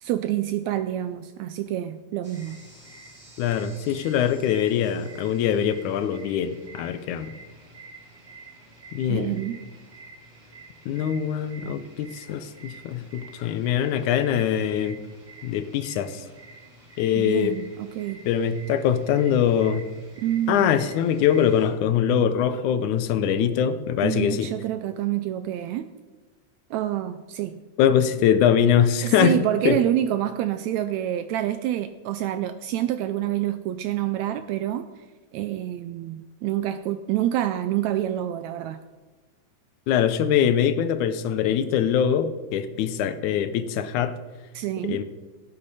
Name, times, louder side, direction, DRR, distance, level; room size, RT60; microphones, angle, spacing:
voice 1, 0.0-2.6 9.1-9.6 17.2-18.2 20.2-20.8 24.0-25.9 26.7-27.5 29.0-35.1 35.3-38.8 44.6-45.0, right 12 dB, 80° right, 11 dB, 1.6 m, -27 dB
sound 1, 2.2-21.7, right 3 dB, 20° right, 1.2 m, -48 dB
voice 2, 3.4-7.3 8.9-9.4 10.9-15.0 15.4-16.3 17.0-17.6 18.3-19.9 20.5-24.5 27.8-29.3 29.7-29.8 39.9-44.2 44.8-45.0, left 9 dB, 80° left, 11 dB, 2.0 m, -23 dB
17.0 x 8.6 x 4.1 m, 1.3 s
omnidirectional pair, 3.6 m